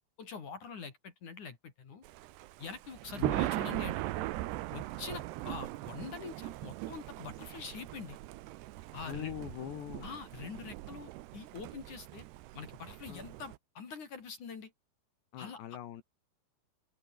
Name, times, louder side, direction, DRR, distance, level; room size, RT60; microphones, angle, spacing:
voice 1, 0.2-2.0 2.6-4.0 4.7-8.2 8.9-9.3 10.0-12.3 12.5-14.7 15.4-15.6, left 5 dB, 50° left, 4.3 m, -45 dB
Thunder, 2.0-13.6, right 17 dB, 80° right, 3.0 m, -39 dB
voice 2, 9.0-10.1 13.1-13.3 15.3-16.0, left 11 dB, 85° left, 4.2 m, -42 dB
open air
omnidirectional pair, 4.8 m